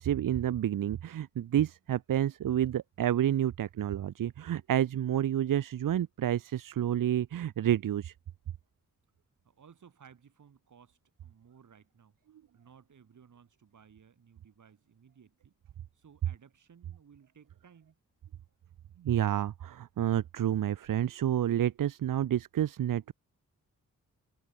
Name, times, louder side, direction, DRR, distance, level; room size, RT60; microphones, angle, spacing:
voice 1, 0.0-8.1 19.0-23.1, right 11 dB, 80° right, 0.7 m, -29 dB
voice 2, 9.4-12.1 12.5-15.5 15.9-18.0, right 7 dB, 65° right, 4.2 m, -59 dB
wide cardioid pair, 155°, 32 cm